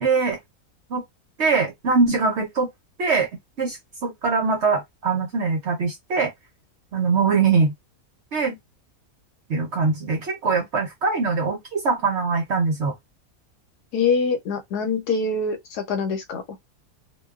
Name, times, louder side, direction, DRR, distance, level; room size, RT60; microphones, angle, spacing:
voice 1, 0.0-0.4 0.9-1.0 1.4-2.7 3.0-3.3 3.6-6.3 6.9-7.7 8.3-8.6 9.5-12.9, right 4 dB, 60° right, 0.8 m, -22 dB
voice 2, 13.9-16.6, left 4 dB, 90° left, 1.3 m, -24 dB
2.5 x 2.2 x 2.3 m
omnidirectional pair, 1.6 m